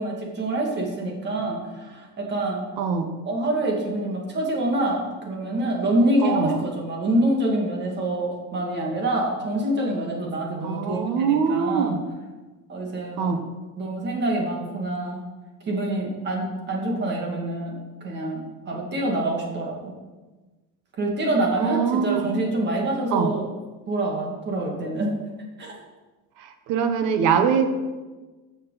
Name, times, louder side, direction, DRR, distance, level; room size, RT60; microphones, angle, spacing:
voice 1, 0.0-2.6 3.3-12.0 12.7-13.4 13.8-15.2 15.7-19.9 20.9-23.5 23.9-25.1 25.6-25.7, right 1 dB, 30° right, -1 dB, 2.3 m, -26 dB
voice 2, 2.8-3.2 6.2-6.6 10.6-12.0 13.2-13.4 21.6-22.3 23.1-23.3 26.4-27.6, right 6 dB, 65° right, 7 dB, 1.3 m, -23 dB
13.5 x 6.6 x 4.1 m, 1.2 s
cardioid pair, 155°, 33 cm